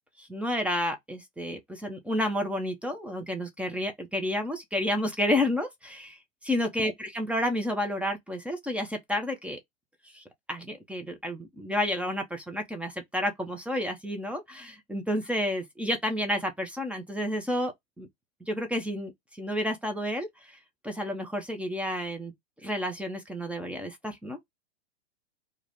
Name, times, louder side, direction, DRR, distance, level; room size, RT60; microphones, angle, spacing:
voice 1, 0.2-6.2 6.4-9.6 10.1-10.2 10.5-18.1 18.5-19.1 19.4-20.3 20.8-22.3 22.6-24.4, left 1 dB, 5° right, 0.4 m, -30 dB
2.3 x 2.0 x 3.3 m
hypercardioid pair, 110°, 33 cm